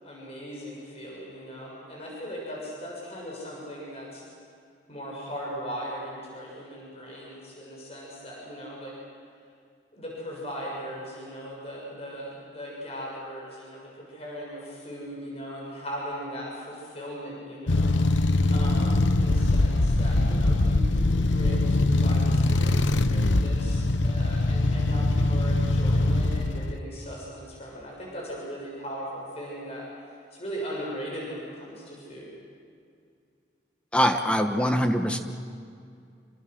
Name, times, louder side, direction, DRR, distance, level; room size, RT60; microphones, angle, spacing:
voice 1, 0.0-4.2 4.9-8.9 9.9-17.9 18.5-29.9 30.3-32.3, equal, 35° left, -3 dB, 7.1 m, -38 dB
sound 1, 17.7-26.8, left 2 dB, 80° left, 0.9 m, -22 dB
voice 2, 33.9-35.2, equal, 5° left, 5 dB, 1.2 m, -23 dB
27.5 x 26.0 x 6.4 m, 2.3 s
head